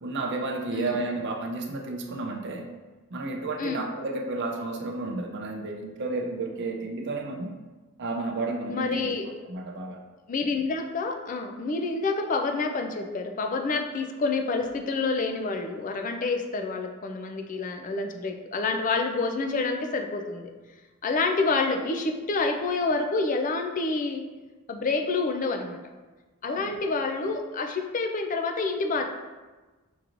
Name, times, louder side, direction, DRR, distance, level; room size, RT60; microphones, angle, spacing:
voice 1, 0.0-2.7 3.1-7.5 8.0-9.1 9.4-10.0 26.4-26.8, right 3 dB, 50° right, 2 dB, 0.5 m, -32 dB
voice 2, 8.7-9.3 10.3-20.5 21.0-24.3 24.7-25.8 26.4-29.0, left 3 dB, 35° left, 4 dB, 0.4 m, -28 dB
6.1 x 3.0 x 2.5 m, 1.2 s
head